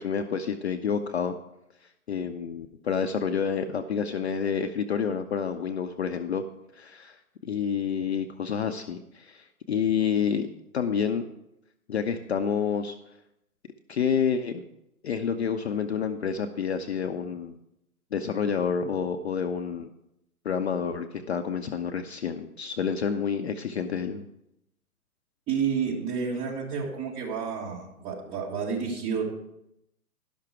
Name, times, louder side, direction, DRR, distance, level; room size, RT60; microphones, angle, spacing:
voice 1, 0.0-1.3 2.1-6.4 6.8-7.2 7.4-10.5 10.7-11.2 11.9-13.0 13.9-14.6 15.0-17.6 18.1-19.9 20.4-24.3, left 7 dB, 45° left, 7 dB, 0.6 m, -28 dB
voice 2, 25.5-29.2, right 6 dB, 15° right, -4 dB, 1.7 m, -30 dB
12.0 x 5.9 x 4.8 m, 0.82 s
hypercardioid pair, 150°, 45 cm